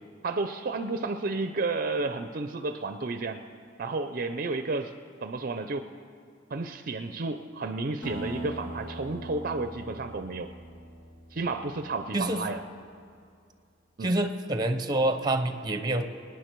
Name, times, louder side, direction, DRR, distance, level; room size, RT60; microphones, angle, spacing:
voice 1, 0.2-3.4 3.8-4.9 5.2-5.9 6.5-10.5 11.3-12.6 14.0-14.1, right 3 dB, 50° right, 9 dB, 0.5 m, -31 dB
Acoustic guitar, 8.0-12.9, right 1 dB, 80° left, 3.3 m, -41 dB
voice 2, 12.1-12.4 14.0-16.0, right 1 dB, 20° right, 7 dB, 0.8 m, -27 dB
26.0 x 9.7 x 4.6 m, 2.4 s
head